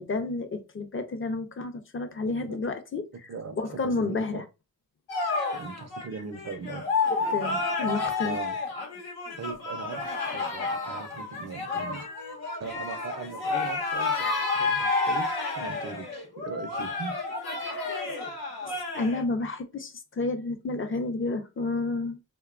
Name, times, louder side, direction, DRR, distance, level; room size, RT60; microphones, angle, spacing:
voice 1, 0.0-3.3 3.6-4.4 7.1-8.4 17.6-18.2 18.6-22.2, left 3 dB, 35° left, 0.5 m, -31 dB
voice 2, 2.2-2.6 3.3-4.4 5.5-7.0 8.2-8.6 9.4-12.1 12.6-17.3, right 4 dB, 45° right, 0.6 m, -39 dB
sound 1, 5.1-19.2, left 3 dB, 90° left, 0.8 m, -30 dB
2.8 x 2.2 x 2.4 m
cardioid pair, 60°, 37 cm